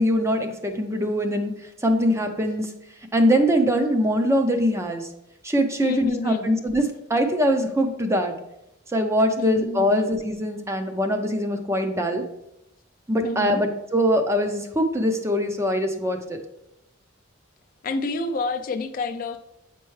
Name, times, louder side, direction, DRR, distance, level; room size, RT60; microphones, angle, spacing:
voice 1, 0.0-1.5 1.8-2.7 3.1-5.1 5.4-8.3 8.9-12.2 13.1-16.4, equal, 15° right, 5 dB, 0.5 m, -22 dB
voice 2, 5.8-6.5 9.4-10.1 13.2-13.6 17.8-19.4, left 3 dB, 40° left, 7 dB, 0.4 m, -28 dB
7.9 x 4.4 x 3.2 m, 0.85 s
head